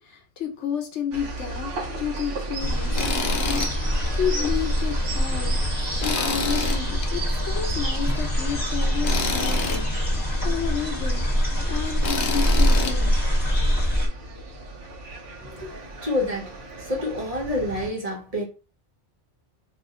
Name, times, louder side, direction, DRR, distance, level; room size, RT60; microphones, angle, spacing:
voice 1, 0.0-1.7 2.0-9.8 10.4-11.2 11.7-13.1, left 8 dB, 80° left, 1.0 m, -31 dB
sound 1, 1.1-17.9, right 2 dB, 60° right, 1.0 m, -37 dB
sound 2, 2.6-14.1, equal, 15° left, 1.2 m, -24 dB
Tools, 3.0-3.7 4.1-4.2 6.0-7.1 9.0-9.8 12.0-12.9, left 3 dB, 55° left, 0.7 m, -27 dB
voice 2, 15.4-18.4, left 1 dB, 35° right, 1.0 m, -29 dB
2.7 x 2.5 x 3.6 m
omnidirectional pair, 1.2 m